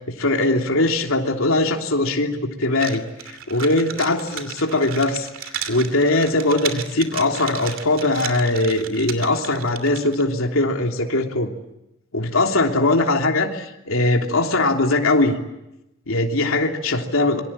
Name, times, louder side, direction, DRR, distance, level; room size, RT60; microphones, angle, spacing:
voice 1, 0.2-5.3 5.7-11.5 12.1-15.4 16.1-17.4, left 2 dB, 80° left, 2 dB, 3.2 m, -21 dB
sound 1, 2.7-10.2, right 8 dB, 70° right, 2.8 m, -34 dB
27.5 x 24.5 x 8.8 m, 0.90 s
head